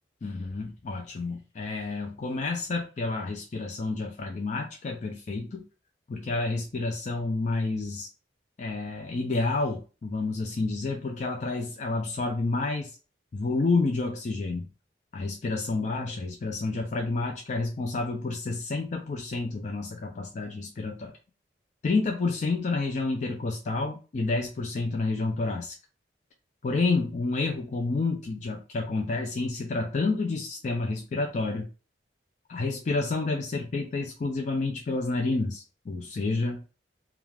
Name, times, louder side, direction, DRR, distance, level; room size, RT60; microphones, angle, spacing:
voice 1, 0.2-5.6 6.1-8.1 8.6-13.0 13.3-14.7 15.1-21.1 21.8-25.8 26.6-31.7 32.5-36.7, left 3 dB, 40° left, 2 dB, 0.4 m, -29 dB
2.3 x 2.3 x 3.2 m, 0.34 s
head